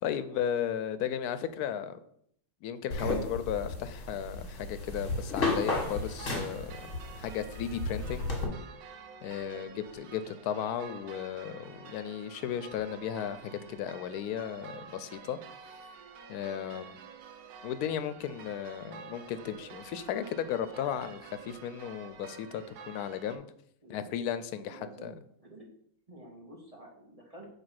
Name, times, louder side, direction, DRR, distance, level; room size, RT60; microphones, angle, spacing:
voice 1, 0.0-2.0 2.6-6.9 7.2-8.3 9.2-15.4 16.3-17.0 17.6-23.5 23.9-25.1, left 9 dB, 85° left, 12 dB, 1.1 m, -35 dB
sound 1, 2.9-8.5, left 2 dB, 55° left, 2.0 m, -34 dB
sound 2, 5.6-23.4, right 5 dB, 85° right, 1.3 m, -49 dB
voice 2, 24.6-25.1 25.4-25.7 26.1-27.5, right 1 dB, 25° right, 0 dB, 1.3 m, -50 dB
7.0 x 3.4 x 5.7 m, 0.68 s
omnidirectional pair, 1.6 m